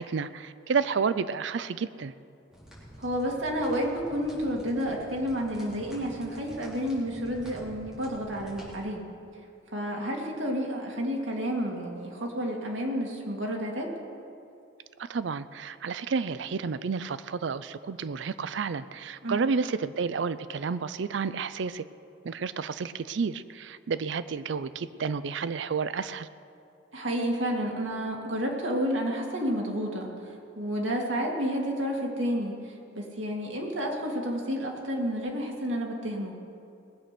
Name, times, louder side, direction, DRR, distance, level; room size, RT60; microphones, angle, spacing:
voice 1, 0.0-2.1 15.0-21.8 22.2-26.3, right 5 dB, 65° right, 15 dB, 0.4 m, -31 dB
sound 1, 2.5-8.8, equal, 5° right, 3.4 m, -48 dB
voice 2, 3.0-9.0 9.7-13.9 19.2-19.4 26.9-30.1 30.6-32.5 32.9-36.3, equal, 90° right, 0 dB, 2.3 m, -30 dB
19.5 x 8.1 x 6.0 m, 2.5 s
head